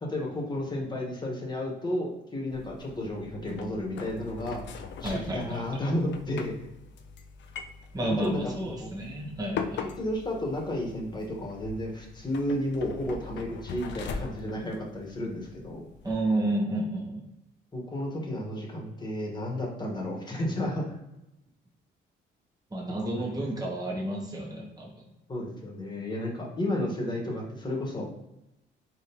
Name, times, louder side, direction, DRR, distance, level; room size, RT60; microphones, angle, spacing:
voice 1, 0.0-4.6 5.0-6.5 8.0-8.9 9.8-15.8 17.7-20.9 23.1-23.4 25.3-28.1, left 1 dB, 20° left, -1 dB, 1.4 m, -32 dB
sound 1, 2.5-16.1, left 5 dB, 60° left, 0.6 m, -41 dB
voice 2, 5.0-5.8 7.9-9.9 16.0-17.3 22.7-25.1, right 1 dB, 20° right, -2 dB, 1.2 m, -31 dB
4.7 x 3.5 x 2.9 m, 0.91 s
cardioid pair, 90°, 21 cm